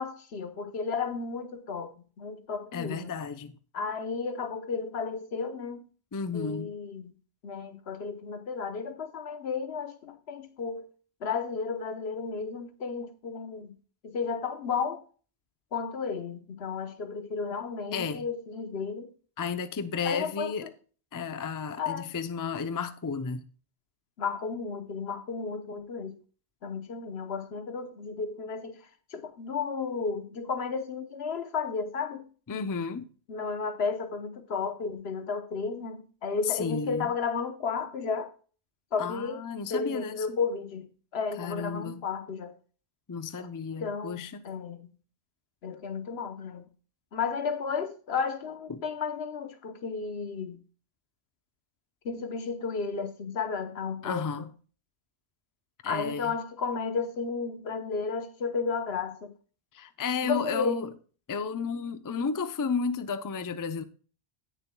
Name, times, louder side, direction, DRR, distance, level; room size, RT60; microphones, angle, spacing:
voice 1, 0.0-3.1 3.7-5.8 6.3-7.1 7.4-10.9 11.2-13.8 14.0-15.0 15.7-19.1 20.0-20.7 21.8-22.1 24.2-26.2 26.6-28.8 29.1-32.3 33.3-38.3 38.9-39.4 39.7-40.9 41.1-42.5 43.4-43.5 43.8-44.9 45.6-46.7 47.1-50.6 52.0-54.5 55.8-59.3 60.2-60.8, left 5 dB, 70° left, 1.2 m, -33 dB
voice 2, 2.7-3.5 6.1-6.7 17.9-18.3 19.4-20.7 21.1-23.4 32.5-33.1 36.5-37.1 39.0-40.4 41.4-42.1 43.1-44.4 48.7-48.8 54.0-54.5 55.8-56.3 59.7-60.9 61.3-63.8, left 5 dB, 25° left, 0.4 m, -32 dB
17.5 x 6.8 x 2.2 m
omnidirectional pair, 1.1 m